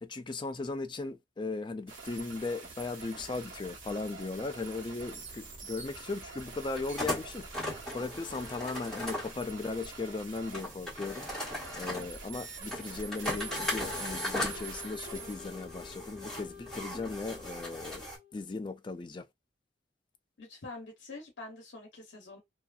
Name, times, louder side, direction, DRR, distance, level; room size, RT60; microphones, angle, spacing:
voice 1, 0.0-18.0 18.3-19.2, left 3 dB, 25° left, 0.3 m, -37 dB
sound 1, 1.9-15.3, right 4 dB, 85° right, 1.1 m, -46 dB
sound 2, 3.2-18.2, left 1 dB, 5° left, 1.3 m, -39 dB
Wind instrument woodwind instrument, 13.4-18.5, left 6 dB, 35° right, 1.1 m, -49 dB
voice 2, 20.4-22.4, left 2 dB, 65° left, 0.9 m, -46 dB
2.7 x 2.5 x 2.3 m
head